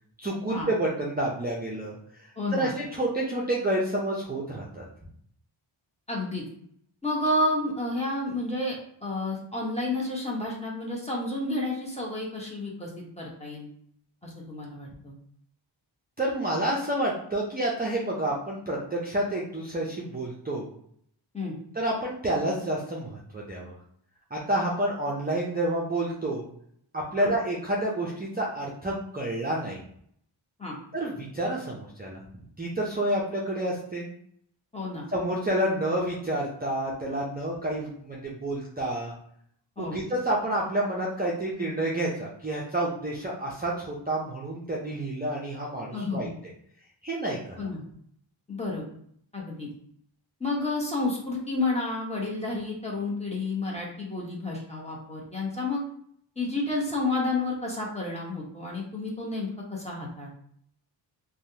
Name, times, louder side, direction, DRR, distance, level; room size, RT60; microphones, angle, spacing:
voice 1, 0.2-4.8 16.2-20.7 21.7-23.7 24.3-26.5 26.9-29.8 30.9-32.2 32.6-34.1 35.1-39.1 39.8-46.3 47.0-47.6, right 1 dB, 20° right, -4 dB, 0.5 m, -29 dB
voice 2, 2.4-2.7 6.1-6.4 7.0-12.9 13.2-13.7 14.2-15.1 21.3-21.5 27.2-27.3 30.6-30.8 34.7-35.1 39.8-40.0 45.9-46.3 47.6-47.8 48.5-48.9 49.3-49.7 50.4-55.8 56.4-60.3, left 2 dB, 15° left, -3 dB, 0.9 m, -30 dB
3.3 x 2.2 x 2.7 m, 0.66 s
wide cardioid pair, 85°, 48 cm